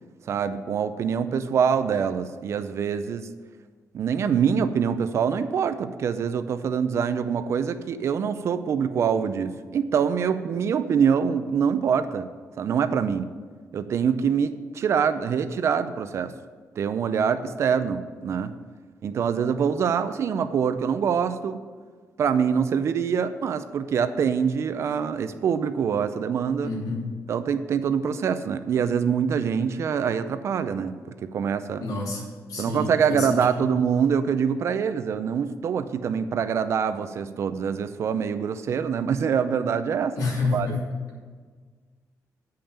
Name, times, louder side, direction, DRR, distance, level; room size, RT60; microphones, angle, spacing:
voice 1, 0.3-3.3 3.9-12.3 12.6-13.3 13.7-16.3 16.8-18.5 19.0-21.6 22.2-26.7 27.3-31.8 32.6-40.2 40.5-40.7, right 7 dB, 50° right, 11 dB, 0.5 m, -25 dB
voice 2, 26.6-27.1 31.8-32.2 32.5-33.6 40.2-40.8, left 3 dB, 85° left, -3 dB, 2.9 m, -28 dB
8.7 x 5.7 x 6.6 m, 1.5 s
wide cardioid pair, 180°, 6 cm